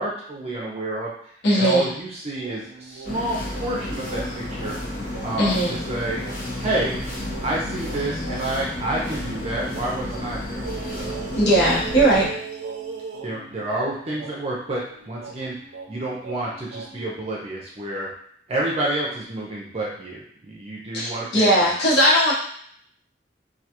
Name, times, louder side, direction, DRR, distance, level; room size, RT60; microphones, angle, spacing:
voice 1, 0.0-4.7 5.2-6.2 6.6-7.0 7.4-10.6 10.9-11.2 12.2-12.3 13.2-15.6 15.9-18.1 18.5-21.7, right 1 dB, 35° right, -4 dB, 0.5 m, -29 dB
voice 2, 1.4-1.9 5.4-5.8 11.3-12.2 20.9-22.3, right 1 dB, 75° left, -7 dB, 1.0 m, -18 dB
sound 1, 2.3-8.6 9.0-17.1, right 5 dB, 85° right, 0.4 m, -40 dB
sound 2, 3.0-12.3, left 1 dB, 50° left, 0.7 m, -32 dB
2.3 x 2.3 x 2.8 m, 0.64 s
head